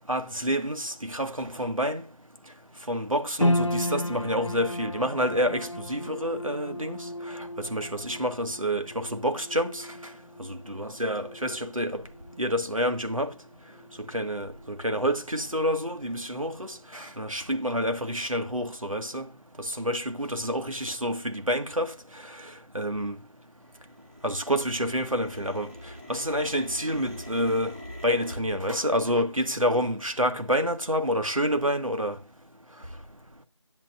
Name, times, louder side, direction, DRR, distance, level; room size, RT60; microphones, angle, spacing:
voice 1, 0.1-2.0 2.9-7.0 7.7-9.8 10.5-12.0 12.4-13.3 14.1-19.2 19.8-21.9 22.7-23.2 24.2-25.7 26.1-27.7 28.0-32.2, equal, 80° right, 1.8 m, -28 dB
sound 1, 3.4-17.0 17.5-17.6, left 1 dB, 60° left, 0.7 m, -35 dB
sound 2, 19.3-19.4 19.8-19.9 20.1-20.7 20.9-23.3 23.5-28.4, left 1 dB, 25° right, 1.9 m, -45 dB
11.0 x 10.5 x 2.6 m
figure-of-eight pair, 180°, 17 cm